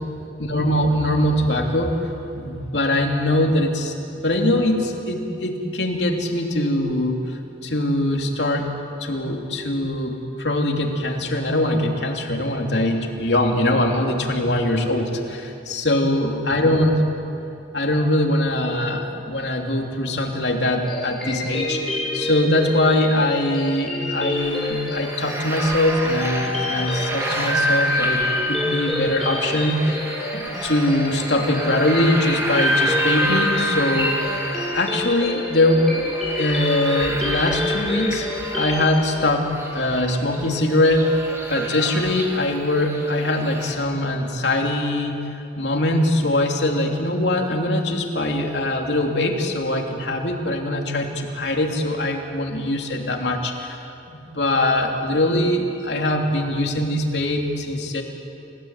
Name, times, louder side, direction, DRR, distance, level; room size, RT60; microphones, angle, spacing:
voice 1, 0.4-3.9 4.2-8.7 9.0-16.9 17.7-21.8 22.1-30.0 30.3-35.9 36.4-39.5 39.7-41.2 41.5-45.2 45.5-58.0, left 1 dB, 75° left, 1 dB, 3.1 m, -22 dB
sound 1, 20.8-39.1, left 2 dB, 5° left, 5.5 m, -29 dB
sound 2, 24.4-43.7, equal, 15° right, 3.1 m, -28 dB
29.0 x 17.0 x 9.2 m, 2.8 s
head